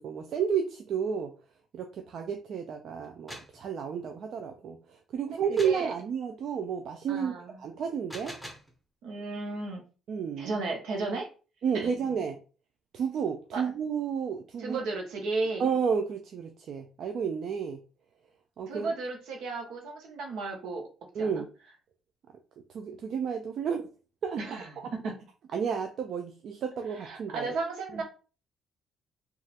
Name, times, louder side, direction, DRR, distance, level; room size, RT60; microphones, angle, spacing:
voice 1, 0.0-1.3 1.7-7.3 7.6-8.3 10.1-10.5 11.6-12.4 12.9-14.8 15.6-17.8 18.6-18.9 21.1-21.5 22.7-23.9 24.2-24.4 24.8-24.9 25.5-27.5 27.9-28.0, right 7 dB, 65° right, 5 dB, 0.3 m, -31 dB
sound 1, 3.0-3.6 5.6-5.9 7.9-8.7, equal, 5° right, 0.9 m, -43 dB
voice 2, 5.2-5.9 7.1-7.6 9.0-9.8 10.4-11.3 11.7-11.9 13.5-13.6 14.6-15.6 18.7-20.8 21.2-21.4 24.4-24.7 25.0-25.1 26.9-28.0, right 3 dB, 80° right, 1 dB, 0.8 m, -34 dB
2.8 x 2.4 x 2.8 m, 0.36 s
cardioid pair, 80°, 0 cm